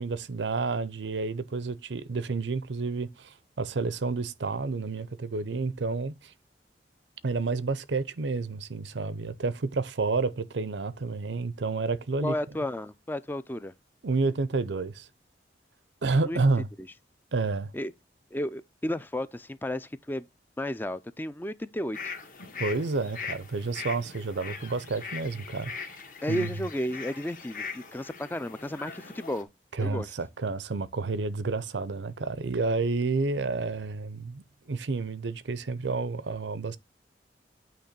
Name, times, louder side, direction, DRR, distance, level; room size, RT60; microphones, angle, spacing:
voice 1, 0.0-6.3 7.2-12.3 14.0-15.1 16.0-16.7 17.3-17.7 22.6-25.7 26.3-26.5 29.7-36.8, right 3 dB, 90° right, 0.6 m, -30 dB
voice 2, 12.2-13.7 16.2-16.4 16.8-16.9 17.7-17.9 18.3-20.3 20.6-22.1 26.2-29.5 29.8-30.1, left 1 dB, 10° left, 0.4 m, -33 dB
sound 1, 21.9-29.4, left 5 dB, 50° left, 1.5 m, -41 dB
9.0 x 3.1 x 6.6 m
head